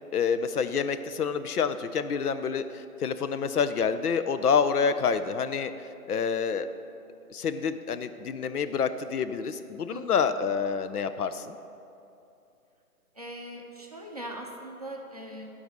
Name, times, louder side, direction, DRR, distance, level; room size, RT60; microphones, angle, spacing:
voice 1, 0.1-5.7 6.1-6.7 7.3-11.6, left 6 dB, 75° left, 11 dB, 0.7 m, -27 dB
voice 2, 9.9-10.2 13.2-15.5, right 1 dB, 25° right, -1 dB, 0.6 m, -40 dB
10.5 x 4.0 x 6.3 m, 2.7 s
hypercardioid pair, 160°, 46 cm